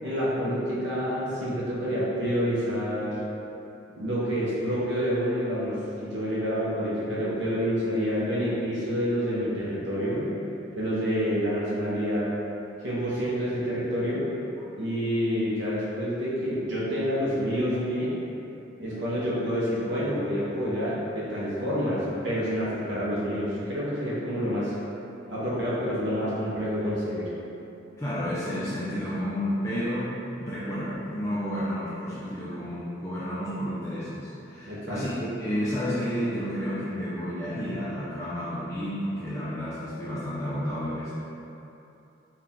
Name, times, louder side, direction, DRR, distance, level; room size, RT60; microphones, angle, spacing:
voice 1, 0.0-3.2 4.0-10.2 10.8-12.3 12.8-14.2 14.8-18.2 18.8-24.7 25.3-27.3 34.7-35.0, equal, 70° right, -8 dB, 0.8 m, -28 dB
voice 2, 28.0-41.1, equal, 15° left, -10 dB, 0.5 m, -31 dB
4.4 x 2.4 x 3.5 m, 2.9 s
head